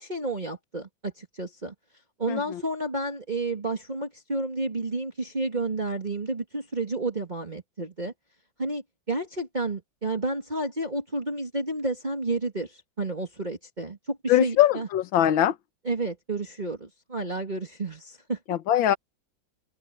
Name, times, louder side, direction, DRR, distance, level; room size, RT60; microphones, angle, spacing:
voice 1, 0.0-1.7 2.2-8.1 8.6-14.9 15.8-18.4, right 2 dB, 20° right, 2.6 m, -31 dB
voice 2, 14.3-15.5 18.5-19.0, left 12 dB, 75° left, 1.7 m, -21 dB
omnidirectional pair, 2.1 m